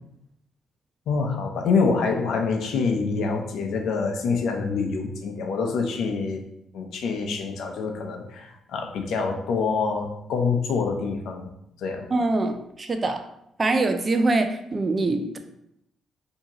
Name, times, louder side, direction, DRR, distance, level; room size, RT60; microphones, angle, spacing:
voice 1, 1.1-6.4 6.7-11.5 11.8-12.1, left 4 dB, 75° left, 3 dB, 0.6 m, -26 dB
voice 2, 12.1-13.3 13.6-15.4, right 2 dB, 30° right, 7 dB, 0.5 m, -24 dB
4.5 x 2.8 x 3.0 m, 0.78 s
cardioid pair, 90°, 0 cm